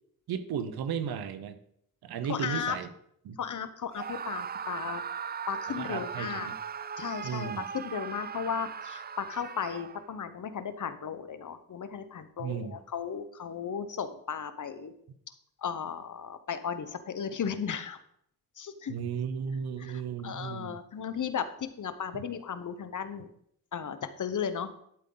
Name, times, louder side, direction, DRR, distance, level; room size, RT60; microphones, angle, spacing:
voice 1, 0.3-1.6 2.0-2.9 3.2-3.4 5.8-6.5 7.2-7.7 12.4-12.8 18.9-20.7, right 7 dB, 85° right, 11 dB, 1.0 m, -34 dB
voice 2, 2.3-2.7 3.4-5.0 5.5-6.5 7.0-14.9 15.6-18.0 18.6-19.0 19.8-23.3 23.7-24.7, left 7 dB, 55° left, 11 dB, 1.1 m, -35 dB
Screaming, 3.9-10.2, right 7 dB, 25° right, 0.4 m, -39 dB
11.5 x 7.6 x 4.0 m, 0.71 s
cardioid pair, 65°, 37 cm